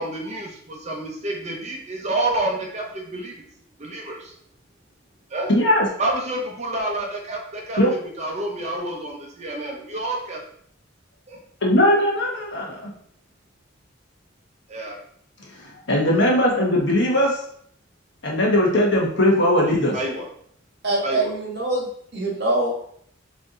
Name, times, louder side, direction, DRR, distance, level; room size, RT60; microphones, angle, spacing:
voice 1, 0.0-3.4 3.8-4.3 5.3-5.5 6.0-7.8 8.2-10.4 11.3-11.4 11.9-12.0 14.7-15.0 19.9-20.3 21.0-21.3, right 2 dB, 35° right, 1 dB, 0.8 m, -28 dB
voice 2, 5.5-5.9 7.8-7.9 11.6-12.9 15.6-17.4 18.2-20.0, left 1 dB, 60° left, -2 dB, 1.3 m, -19 dB
voice 3, 20.8-22.7, right 2 dB, 55° right, -2 dB, 1.5 m, -24 dB
4.1 x 3.3 x 3.8 m, 0.65 s
head